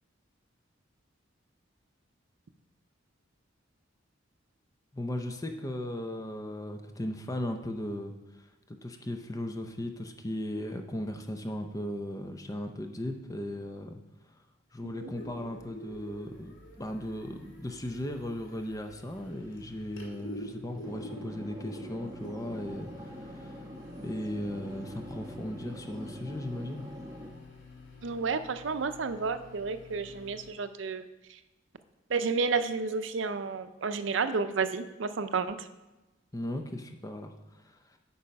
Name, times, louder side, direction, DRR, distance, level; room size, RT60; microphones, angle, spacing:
voice 1, 4.9-14.0 14.7-23.6 24.0-26.9 36.3-38.0, left 1 dB, 20° left, 5 dB, 0.6 m, -37 dB
sound 1, 15.1-30.5, left 1 dB, 85° left, 2.0 m, -49 dB
sound 2, 20.8-27.3, equal, 20° right, 1.1 m, -44 dB
voice 2, 28.0-31.1 32.1-35.7, right 4 dB, 70° right, 11 dB, 0.6 m, -31 dB
8.7 x 5.5 x 5.3 m, 1.1 s
head